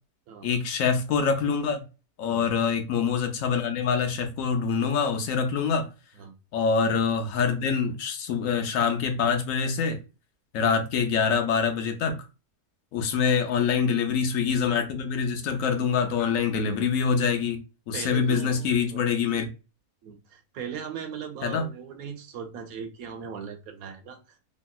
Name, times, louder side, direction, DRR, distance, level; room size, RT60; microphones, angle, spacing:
voice 1, 0.4-1.8 2.2-5.9 6.5-10.0 10.5-12.2 12.9-17.6 17.9-19.5 21.4-21.7, left 6 dB, 70° left, 0.9 m, -25 dB
voice 2, 17.9-19.0 20.0-24.4, right 7 dB, 70° right, 1.1 m, -39 dB
3.0 x 2.7 x 2.2 m
omnidirectional pair, 1.6 m